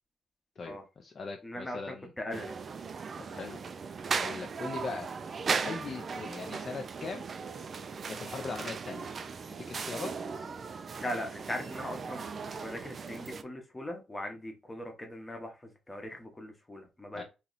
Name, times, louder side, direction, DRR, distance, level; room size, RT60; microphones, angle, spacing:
voice 1, 0.6-2.1 3.3-3.6 4.2-5.1 5.6-7.3 8.1-9.1 9.5-10.1 17.1-17.2, left 4 dB, 35° left, 2 dB, 0.5 m, -40 dB
voice 2, 1.4-2.5 11.0-12.2 12.6-17.2, left 1 dB, 10° left, 3 dB, 0.8 m, -40 dB
sound 1, 2.3-13.4, right 5 dB, 35° right, 0.3 m, -37 dB
3.0 x 2.8 x 3.9 m, 0.28 s
cardioid pair, 165°, 0 cm